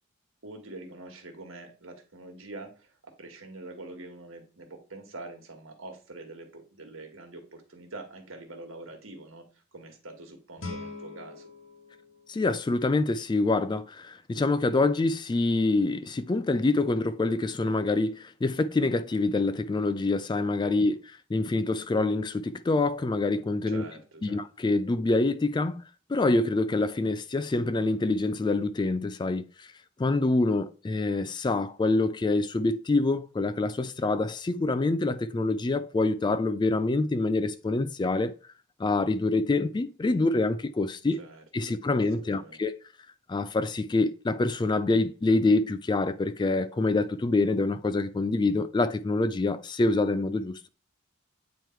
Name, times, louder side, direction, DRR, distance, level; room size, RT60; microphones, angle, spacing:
voice 1, 0.4-9.5 9.7-11.5 20.8-20.9 23.7-24.4 41.2-41.7 42.2-42.6, right 2 dB, 75° right, 1.7 m, -45 dB
Guitar, 10.6-13.4, left 3 dB, 70° left, 1.3 m, -43 dB
voice 2, 12.3-21.0 21.3-23.8 24.2-25.8 26.1-29.7 30.0-38.3 38.8-41.2 41.5-42.7 43.3-50.7, left 2 dB, 20° left, 0.3 m, -26 dB
9.0 x 3.1 x 4.5 m
head